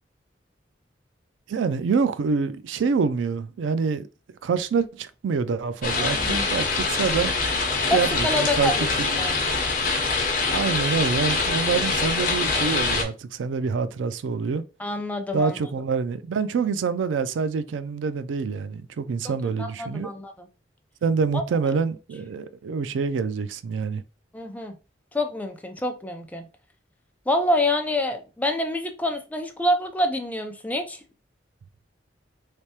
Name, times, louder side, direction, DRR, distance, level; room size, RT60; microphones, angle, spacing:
voice 1, 1.5-4.1 4.4-7.3 7.8-8.7 9.0-9.4 10.5-14.6 15.3-20.1 21.0-24.0, right 5 dB, 85° right, 0.4 m, -26 dB
sound 1, 5.8-13.0, left 4 dB, 50° left, 0.9 m, -24 dB
voice 2, 6.0-6.5 7.9-9.3 14.8-15.6 19.2-19.3 19.6-20.5 21.3-21.7 24.3-24.8 25.1-26.5 27.3-31.0, left 1 dB, 10° left, 0.5 m, -27 dB
3.3 x 3.2 x 2.8 m
head